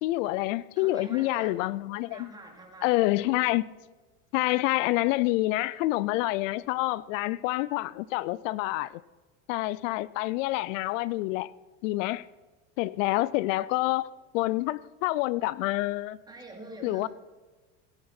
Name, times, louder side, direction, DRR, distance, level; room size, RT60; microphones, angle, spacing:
voice 1, 0.0-2.3 2.8-3.7 4.3-9.0 9.5-11.5 11.8-12.3 12.8-14.1 14.3-16.2 16.8-17.1, left 18 dB, 80° left, 0.5 m, -27 dB
voice 2, 0.8-1.7 2.1-3.0 16.3-17.1, right 2 dB, 10° right, 2.5 m, -45 dB
17.5 x 10.5 x 4.4 m
supercardioid pair, 135°, 38 cm